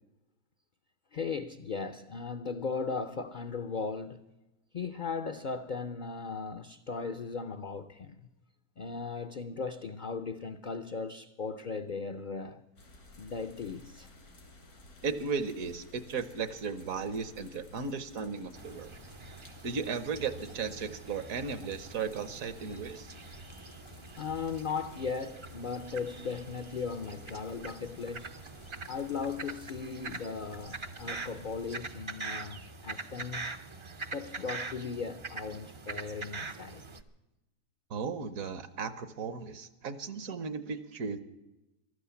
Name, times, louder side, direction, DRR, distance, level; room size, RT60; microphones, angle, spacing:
voice 1, 1.1-4.2 4.7-8.3 8.8-12.6 13.2-14.1 24.2-28.4 28.9-33.5 34.1-36.8, left 5 dB, 60° left, 0.5 m, -37 dB
sound 1, 12.8-31.8, left 2 dB, 90° left, 3.5 m, -55 dB
voice 2, 15.0-18.9 19.6-23.1 37.9-41.2, right 5 dB, 70° right, 1.3 m, -35 dB
sound 2, 18.5-37.0, right 3 dB, 45° right, 0.4 m, -44 dB
14.5 x 12.5 x 7.0 m
omnidirectional pair, 1.6 m